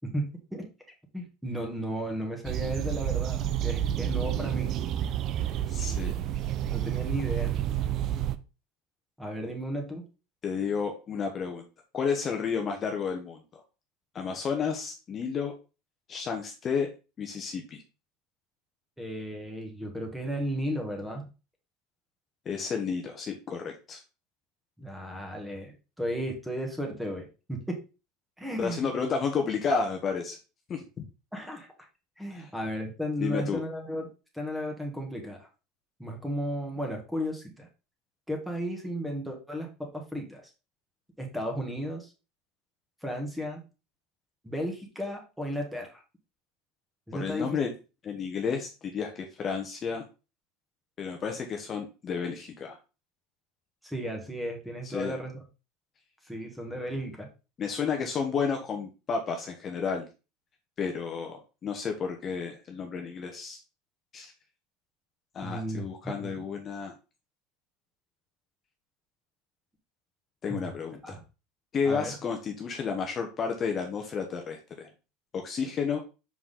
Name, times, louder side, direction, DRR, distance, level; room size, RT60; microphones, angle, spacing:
voice 1, 0.0-0.7 1.1-4.8 6.7-7.5 9.2-10.0 19.0-21.2 24.8-27.8 28.4-28.9 31.3-31.7 32.2-34.1 34.3-35.5 36.0-37.7 38.3-40.4 41.2-42.1 43.0-43.6 44.4-46.0 47.1-47.5 53.8-55.3 56.2-57.3 65.4-66.4 70.5-70.6 71.0-71.2 71.8-72.1, equal, ahead, 2 dB, 1.9 m, -34 dB
sound 1, 2.4-8.4, right 11 dB, 45° right, 0.5 m, -29 dB
voice 2, 5.7-6.1 10.4-11.6 11.9-13.6 14.1-15.5 16.1-16.9 17.2-17.8 22.4-24.0 28.6-30.4 30.7-30.8 32.3-32.5 33.2-33.6 47.2-47.7 48.0-50.0 51.0-52.8 54.8-55.1 57.6-60.1 60.8-63.6 64.1-64.3 65.3-66.9 70.4-71.1 71.7-74.9 75.3-76.0, left 6 dB, 30° left, 3 dB, 1.1 m, -31 dB
5.9 x 4.7 x 3.8 m, 0.31 s
supercardioid pair, 130°, 0 cm